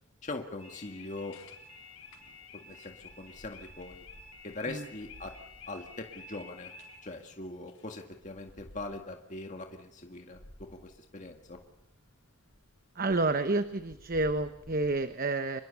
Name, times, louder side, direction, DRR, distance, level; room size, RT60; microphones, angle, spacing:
voice 1, 0.2-1.4 2.5-4.1 4.4-5.3 5.7-6.7 7.0-11.6, left 2 dB, 35° left, 3 dB, 1.9 m, -41 dB
sound 1, 0.6-9.7 10.3-12.1 12.5-12.6 13.0-15.0, left 2 dB, 75° left, 4.4 m, -52 dB
voice 2, 12.9-15.6, right 2 dB, 40° right, 9 dB, 1.1 m, -29 dB
26.0 x 22.0 x 7.0 m, 0.84 s
head